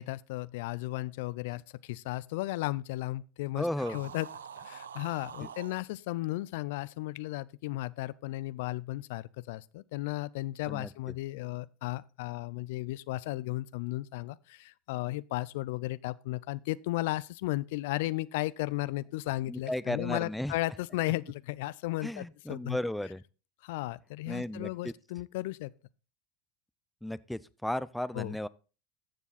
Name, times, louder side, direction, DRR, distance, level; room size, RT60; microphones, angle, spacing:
voice 1, 0.0-4.3 4.6-22.8 23.6-25.7 28.1-28.3, left 18 dB, 70° left, 0.4 m, -35 dB
voice 2, 3.5-4.0 5.4-5.5 10.7-11.1 19.5-20.5 22.0-23.2 24.3-24.9 27.0-28.5, left 1 dB, 5° left, 0.5 m, -35 dB
sound 1, 3.7-5.8, right 7 dB, 85° right, 0.6 m, -45 dB
14.0 x 7.0 x 4.1 m
hypercardioid pair, 85°, 0 cm